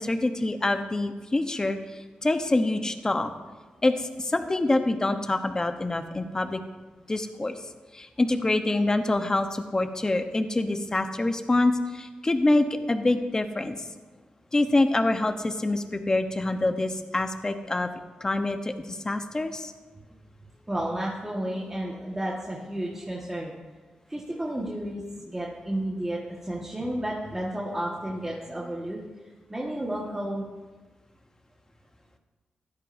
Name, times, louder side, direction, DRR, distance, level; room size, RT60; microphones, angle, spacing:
voice 1, 0.0-1.8 2.2-3.3 3.8-6.6 7.1-7.5 7.9-13.8 14.5-17.9 18.2-19.7, left 2 dB, 25° left, 7 dB, 0.9 m, -25 dB
voice 2, 20.7-23.6 24.1-29.0 29.5-30.5, right 1 dB, 15° right, -4 dB, 1.6 m, -32 dB
16.0 x 12.5 x 2.7 m, 1.3 s
wide cardioid pair, 95°, 3 cm